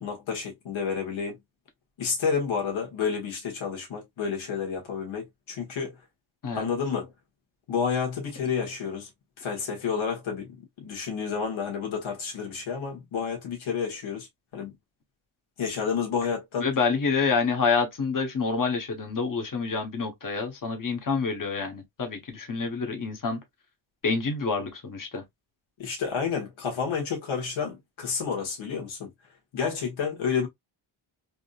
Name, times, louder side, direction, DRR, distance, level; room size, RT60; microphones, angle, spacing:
voice 1, 0.0-1.4 2.0-6.0 6.5-7.1 7.7-9.1 9.4-14.3 14.5-14.7 15.6-16.7 25.8-29.1 29.5-30.5, left 6 dB, 70° left, 1.5 m, -30 dB
voice 2, 16.6-23.4 24.0-25.2, left 4 dB, 40° left, 1.0 m, -27 dB
3.5 x 2.7 x 2.3 m
wide cardioid pair, 130°, 49 cm